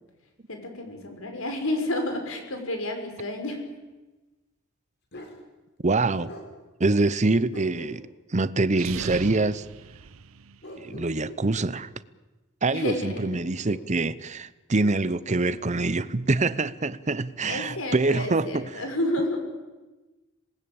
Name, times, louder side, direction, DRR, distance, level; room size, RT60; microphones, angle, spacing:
voice 1, 0.5-3.6 12.7-13.4 17.5-19.4, left 1 dB, 75° left, 5.5 m, -30 dB
Bark, 5.1-5.4 6.2-6.5 7.5-8.2 8.9-9.4 10.6-11.8 13.0-13.9 14.8-15.6, left 1 dB, 55° left, 4.6 m, -43 dB
voice 2, 5.8-6.3 6.8-8.1 8.3-9.6 10.8-11.9 12.6-18.6, right 3 dB, 35° right, 0.8 m, -25 dB
sound 1, 8.7-10.8, right 5 dB, 85° right, 0.7 m, -39 dB
26.5 x 19.5 x 8.8 m
head